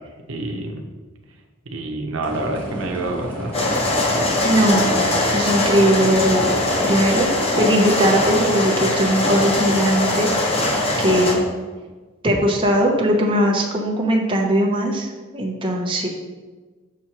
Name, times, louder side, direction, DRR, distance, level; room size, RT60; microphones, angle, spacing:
voice 1, 0.3-0.8 1.7-3.6, right 2 dB, 80° right, 2 dB, 0.8 m, -27 dB
sound 1, 2.2-7.2, equal, 5° left, 1.2 m, -32 dB
sound 2, 3.5-11.3, left 1 dB, 30° left, 1.0 m, -21 dB
voice 2, 4.4-4.9 5.3-6.5 6.8-7.3 7.6-11.4 12.2-16.1, equal, 25° right, -1 dB, 0.8 m, -20 dB
6.7 x 6.1 x 3.0 m, 1.3 s
head